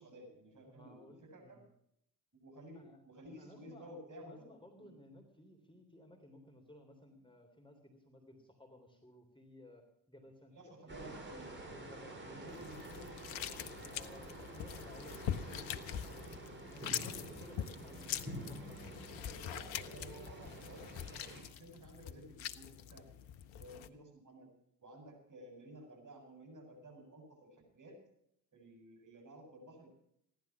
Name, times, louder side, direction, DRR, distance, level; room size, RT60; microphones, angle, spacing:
voice 1, 0.0-1.6 2.4-4.5 4.8-4.9 10.5-11.7 12.2-13.2 15.0-15.1 19.3-23.2 23.6-24.5 24.8-28.0 28.5-29.9, right 1 dB, 35° right, 2 dB, 7.4 m, -54 dB
voice 2, 0.6-1.7 2.7-3.0 3.4-3.9 4.2-10.5 10.8-11.2 11.6-12.9 13.9-19.0, left 1 dB, 10° left, 2 dB, 3.2 m, -58 dB
sound 1, 10.9-21.4, right 1 dB, 20° right, 6.6 m, -49 dB
sound 2, 12.5-23.9, left 10 dB, 65° left, 1.0 m, -44 dB
16.0 x 11.5 x 6.0 m, 0.73 s
hypercardioid pair, 50°, 50 cm